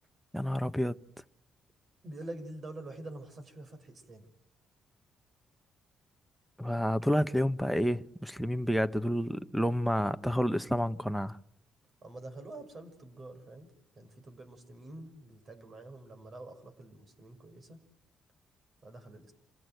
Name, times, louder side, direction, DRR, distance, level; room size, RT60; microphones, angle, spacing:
voice 1, 0.3-1.0 6.6-11.4, equal, ahead, 1.2 m, -29 dB
voice 2, 2.0-4.3 12.0-17.8 18.8-19.3, right 2 dB, 40° right, 6.4 m, -46 dB
27.5 x 17.0 x 9.4 m
cardioid pair, 90°, 0 cm